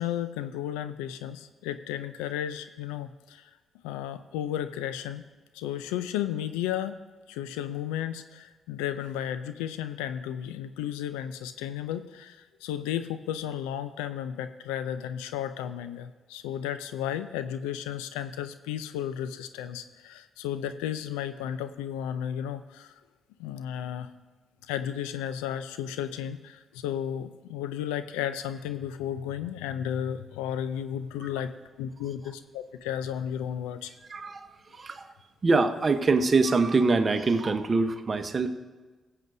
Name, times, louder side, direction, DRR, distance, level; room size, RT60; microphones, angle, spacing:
voice 1, 0.0-3.5 3.8-5.2 5.5-7.0 7.3-22.9 23.4-24.1 24.7-31.5 31.8-33.9, left 10 dB, 90° left, 12 dB, 0.4 m, -33 dB
voice 2, 34.1-34.5 34.7-35.1 35.4-38.5, right 3 dB, 45° right, 8 dB, 1.0 m, -24 dB
19.5 x 7.6 x 2.7 m, 1.3 s
hypercardioid pair, 50°, 0 cm